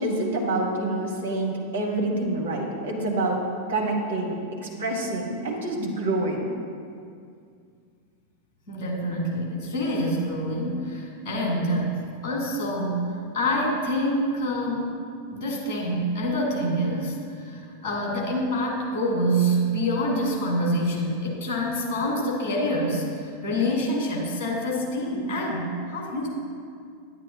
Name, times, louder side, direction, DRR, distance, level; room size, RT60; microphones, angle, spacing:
voice 1, 0.0-3.4 3.7-4.4 4.6-6.5, right 2 dB, 65° right, -1 dB, 1.1 m, -27 dB
voice 2, 8.7-11.9 12.2-13.0 13.3-15.0 15.3-26.3, equal, 45° left, -2 dB, 2.0 m, -26 dB
9.6 x 9.1 x 2.2 m, 2.3 s
figure-of-eight pair, 90°, 0 cm